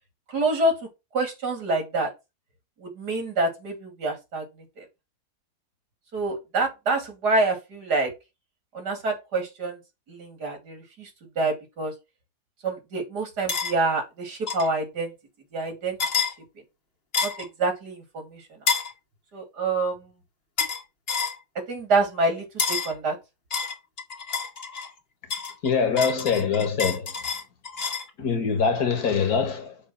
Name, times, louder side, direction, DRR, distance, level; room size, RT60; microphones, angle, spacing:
voice 1, 0.3-0.7 1.1-2.1 2.8-4.4 4.8-4.9 6.1-8.1 8.7-9.8 10.1-11.1 11.4-11.9 12.6-15.1 15.5-16.0 17.2-18.4 19.3-20.0 21.7-23.2, right 2 dB, 75° right, 3.1 m, -26 dB
sound 1, 13.5-13.7 14.5-14.7 16.0-16.3 17.1-17.5 18.7-18.9 20.6-20.8 21.1-21.4 22.6-22.9 23.5-24.9 25.3-28.1, left 5 dB, 40° left, 1.3 m, -28 dB
voice 2, 25.6-27.1 28.2-29.8, left 6 dB, 65° left, 1.9 m, -24 dB
7.4 x 3.2 x 5.5 m
omnidirectional pair, 1.8 m